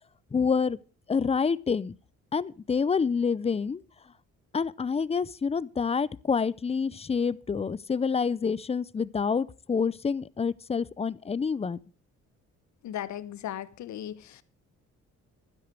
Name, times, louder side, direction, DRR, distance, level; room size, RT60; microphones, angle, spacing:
voice 1, 0.3-0.8 1.1-2.0 2.3-3.8 4.5-11.8, left 5 dB, 20° left, 0.5 m, -27 dB
voice 2, 12.8-14.4, left 11 dB, 70° left, 1.0 m, -37 dB
12.0 x 10.5 x 4.7 m
cardioid pair, 90°, 30 cm